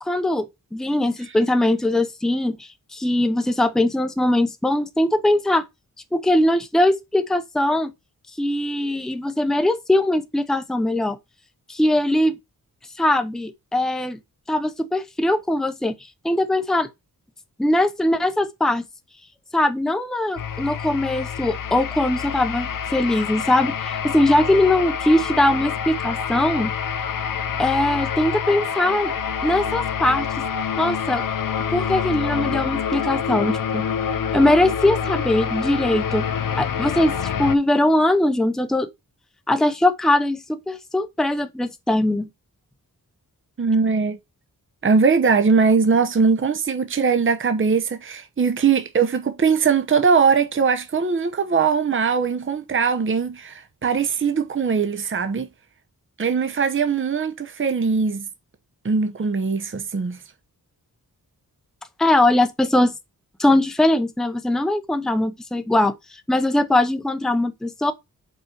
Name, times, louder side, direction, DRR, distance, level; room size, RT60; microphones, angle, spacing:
voice 1, 0.0-5.6 6.1-7.9 8.4-11.2 11.7-12.4 13.0-14.2 14.5-16.0 16.2-16.9 17.6-18.9 19.5-26.7 27.6-29.1 29.4-30.4 30.8-31.2 31.7-33.8 34.3-36.3 36.6-38.9 39.5-42.3 62.0-62.9 63.4-66.0 66.3-67.9, left 1 dB, ahead, 0.7 m, -21 dB
sound 1, 20.4-37.6, left 7 dB, 60° left, 0.6 m, -27 dB
voice 2, 43.6-44.2 44.8-55.5 56.2-58.3 58.8-60.2, right 5 dB, 35° right, 0.8 m, -20 dB
5.6 x 4.4 x 6.2 m
wide cardioid pair, 135°, 36 cm